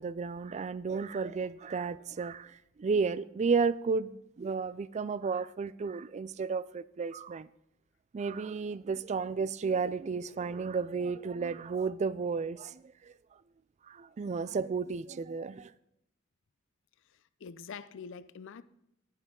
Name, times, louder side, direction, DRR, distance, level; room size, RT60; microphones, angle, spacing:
voice 1, 0.0-7.5 8.1-13.1 13.9-15.7, right 5 dB, 35° right, 0.3 m, -33 dB
voice 2, 17.1-18.6, left 6 dB, 65° left, 0.5 m, -45 dB
10.5 x 9.9 x 3.7 m
head